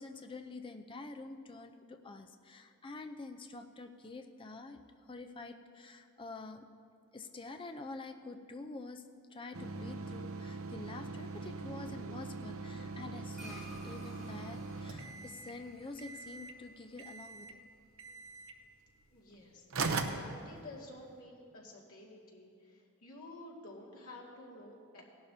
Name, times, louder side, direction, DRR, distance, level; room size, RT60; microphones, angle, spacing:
voice 1, 0.0-6.6 7.1-9.0 9.3-17.6, left 3 dB, 25° left, 6 dB, 0.5 m, -47 dB
sound 1, 9.5-15.6 16.0-16.6 17.0-17.6 18.0-18.6 19.3-19.4 19.7-21.0, right 3 dB, 65° right, 0.7 m, -41 dB
sound 2, 13.4-18.0, equal, ahead, 2.8 m, -55 dB
voice 2, 19.1-25.0, left 1 dB, 80° left, -3 dB, 2.2 m, -51 dB
17.5 x 11.5 x 2.8 m, 2.5 s
head